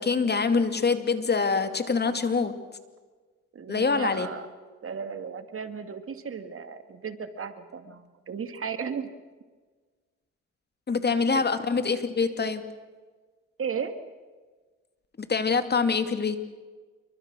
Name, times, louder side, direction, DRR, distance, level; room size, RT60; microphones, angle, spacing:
voice 1, 0.0-2.6 3.7-4.3 10.9-12.7 15.3-16.4, left 4 dB, 35° left, 9 dB, 2.5 m, -25 dB
voice 2, 3.5-4.5 4.8-9.1 11.3-11.4 13.6-14.0, right 6 dB, 45° right, 10 dB, 2.2 m, -35 dB
28.5 x 24.0 x 6.3 m, 1.4 s
cardioid pair, 90°, 30 cm